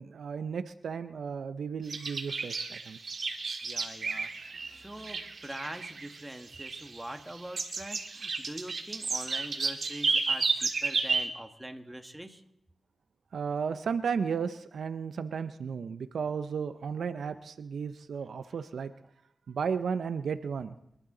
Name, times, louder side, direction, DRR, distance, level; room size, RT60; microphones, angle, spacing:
voice 1, 0.0-3.0 13.3-18.9 19.5-20.8, right 6 dB, 90° right, 11 dB, 0.6 m, -34 dB
sound 1, 1.9-4.7 5.0-6.2 6.5-7.3 7.5-11.3, right 4 dB, 70° right, 1.8 m, -32 dB
voice 2, 3.6-12.4, right 1 dB, 10° right, 6 dB, 1.6 m, -43 dB
25.0 x 12.0 x 3.9 m, 0.76 s
cardioid pair, 55°, 0 cm